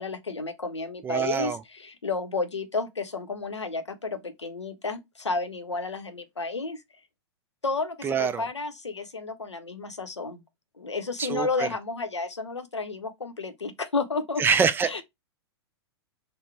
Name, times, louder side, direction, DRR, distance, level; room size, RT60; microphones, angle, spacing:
voice 1, 0.0-6.8 7.6-10.4 10.8-14.4 14.8-15.0, left 4 dB, 90° left, 0.7 m, -32 dB
voice 2, 1.0-1.6 8.0-8.5 11.2-11.7 14.4-15.0, right 6 dB, 15° right, 0.3 m, -25 dB
3.9 x 2.1 x 3.2 m
figure-of-eight pair, 100°, 14 cm